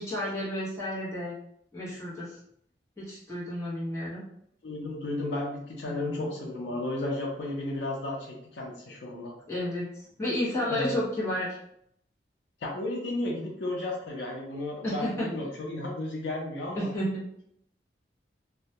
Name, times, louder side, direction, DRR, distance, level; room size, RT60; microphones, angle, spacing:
voice 1, 0.0-1.3 1.7-2.4 3.0-4.2 5.8-6.3 9.5-9.8 10.2-11.6 14.8-15.3 16.7-17.4, left 1 dB, 15° left, -10 dB, 0.7 m, -31 dB
voice 2, 4.6-9.3 10.6-11.0 12.6-16.9, left 1 dB, 85° left, -1 dB, 0.5 m, -33 dB
2.2 x 2.1 x 2.7 m, 0.71 s
head